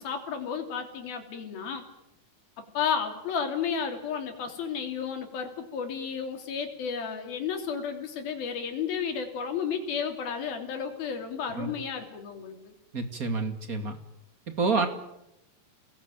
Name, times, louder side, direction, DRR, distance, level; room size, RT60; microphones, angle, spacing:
voice 1, 0.0-1.8 2.6-12.7, left 6 dB, 85° left, 5 dB, 4.9 m, -32 dB
voice 2, 12.9-14.0 14.6-14.9, right 4 dB, 25° right, 7 dB, 2.3 m, -28 dB
29.0 x 20.0 x 9.2 m, 0.88 s
omnidirectional pair, 4.1 m